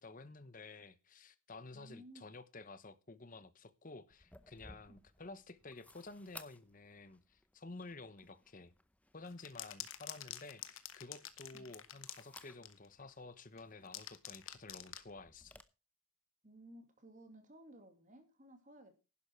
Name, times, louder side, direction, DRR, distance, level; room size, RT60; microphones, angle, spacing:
voice 1, 0.0-8.7 9.1-15.6, left 3 dB, 35° left, 1.0 m, -52 dB
voice 2, 1.7-2.4 4.9-5.0 8.2-8.3 11.5-11.7 16.4-19.0, right 1 dB, 35° right, 2.5 m, -57 dB
sound 1, 4.1-15.6, left 2 dB, 5° left, 0.7 m, -61 dB
sound 2, 9.2-12.9 13.6-15.1, left 12 dB, 65° left, 1.3 m, -47 dB
11.5 x 10.5 x 4.6 m
head